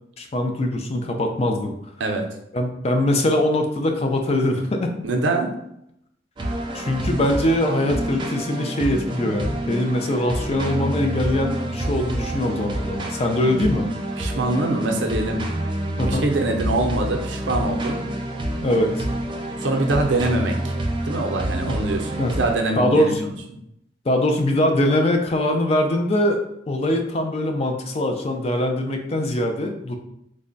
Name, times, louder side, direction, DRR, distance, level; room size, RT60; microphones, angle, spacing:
voice 1, 0.2-1.7 2.5-4.9 6.7-13.9 16.0-16.2 18.6-19.1 21.7-21.8 22.2-22.3 22.8-23.2 24.1-30.0, left 1 dB, 35° left, 4 dB, 0.4 m, -22 dB
voice 2, 5.0-5.5 14.2-15.4 16.0-18.0 19.6-20.7 21.0-23.3, right 2 dB, 75° right, 3 dB, 0.6 m, -24 dB
sound 1, 6.4-22.5, right 1 dB, 25° right, 0.4 m, -28 dB
3.4 x 2.1 x 3.9 m, 0.78 s
head